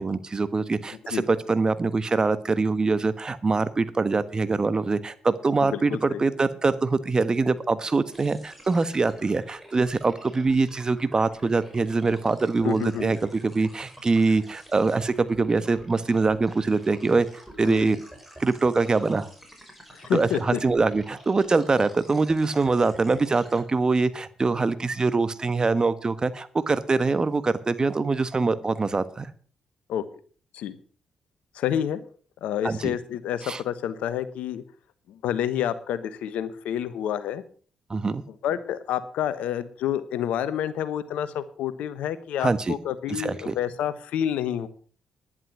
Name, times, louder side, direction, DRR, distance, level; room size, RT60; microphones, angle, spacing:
voice 1, 0.0-17.3 17.6-18.0 18.4-19.3 20.1-29.3 32.6-32.9 33.4-33.6 37.9-38.2 42.4-42.7 43.1-43.5, right 3 dB, 35° right, 14 dB, 1.3 m, -24 dB
voice 2, 5.6-6.2 12.6-13.1 17.7-17.9 19.9-20.6 29.9-30.0 30.5-30.8 31.5-32.0 32.4-34.6 35.1-37.4 38.4-44.7, left 10 dB, 75° left, 14 dB, 1.1 m, -29 dB
sound 1, 8.1-23.6, equal, 5° right, 5.5 m, -48 dB
11.5 x 11.0 x 6.1 m, 0.43 s
hypercardioid pair, 50°, 2 cm